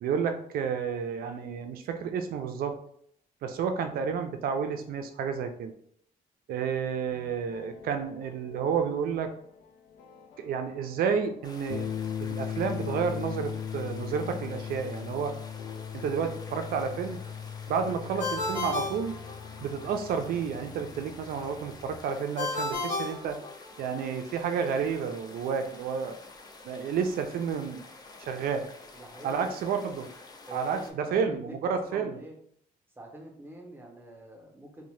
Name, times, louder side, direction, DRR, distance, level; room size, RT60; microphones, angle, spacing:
voice 1, 0.0-2.7 3.4-5.7 6.5-9.3 10.4-12.0 12.2-15.3 15.9-17.2 17.7-19.1 19.6-23.4 23.8-26.2 26.6-27.8 28.2-28.6 29.2-30.1 30.5-32.2, right 6 dB, 75° right, 7 dB, 0.4 m, -30 dB
sound 1, 7.2-22.0, left 8 dB, 90° left, 0.4 m, -39 dB
sound 2, 11.4-30.9, left 3 dB, 25° left, 0.4 m, -49 dB
Ringtone, 18.2-19.9 22.4-24.0, left 3 dB, 55° left, 0.8 m, -33 dB
voice 2, 28.9-29.8 30.5-32.4 33.0-34.9, right 1 dB, 15° right, 1 dB, 0.6 m, -46 dB
2.7 x 2.1 x 3.1 m, 0.66 s
cardioid pair, 115°, 15 cm